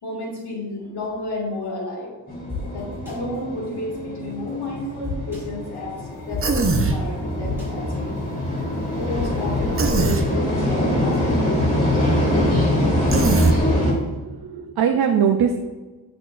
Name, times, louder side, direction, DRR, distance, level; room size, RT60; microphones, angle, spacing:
voice 1, 0.0-2.2 2.7-6.5 6.8-8.4 9.0-11.9, left 2 dB, 80° left, -3 dB, 2.0 m, -32 dB
sound 1, 2.3-13.9, left 1 dB, 25° left, 2.2 m, -24 dB
sound 2, 2.5-2.6 3.1-3.2 5.0-5.4 6.3-6.4 6.7-6.8 7.4-7.7 9.1-9.2 9.6-9.9, left 5 dB, 5° right, 1.8 m, -29 dB
Human voice, 6.4-7.0 9.8-10.2 13.1-13.6, right 3 dB, 35° right, 0.7 m, -20 dB
voice 2, 13.8-15.6, right 7 dB, 75° right, 5 dB, 0.5 m, -22 dB
8.7 x 6.3 x 2.5 m, 1.2 s
wide cardioid pair, 145°, 38 cm